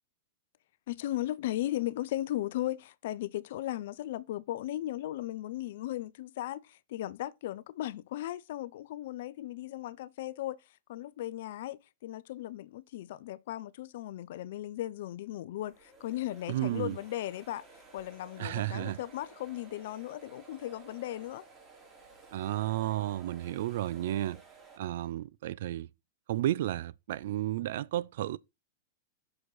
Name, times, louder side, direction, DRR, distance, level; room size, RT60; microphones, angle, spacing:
voice 1, 0.9-10.6 10.9-17.6 17.9-21.5, left 14 dB, 65° left, 0.5 m, -37 dB
sound 1, 15.6-24.8, right 4 dB, 20° right, 2.5 m, -55 dB
voice 2, 16.5-17.0 18.4-19.0 22.3-24.4 24.8-25.9 26.3-28.4, right 13 dB, 65° right, 0.4 m, -32 dB
6.2 x 4.9 x 3.9 m
hypercardioid pair, 110°, 0 cm